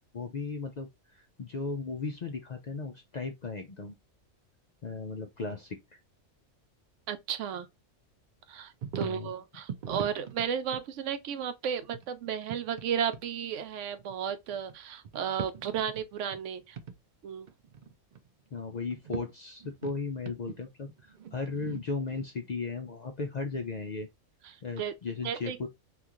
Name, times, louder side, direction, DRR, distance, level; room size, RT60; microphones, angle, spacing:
voice 1, 0.0-4.0 4.8-6.0 9.0-9.3 18.5-24.1 24.6-25.7, left 4 dB, 55° left, 0.4 m, -36 dB
voice 2, 7.1-7.7 8.5-16.8 17.2-17.5 24.4-24.9 25.2-25.7, right 8 dB, 80° right, 0.9 m, -34 dB
sound 1, 8.8-9.3 9.7-10.8 11.9-12.9 13.1-13.3 14.0-14.8 15.0-16.5 16.8-16.9 17.3-18.3 18.8-19.2 19.6-22.3, right 7 dB, 55° right, 0.5 m, -42 dB
3.0 x 2.5 x 3.6 m
omnidirectional pair, 1.2 m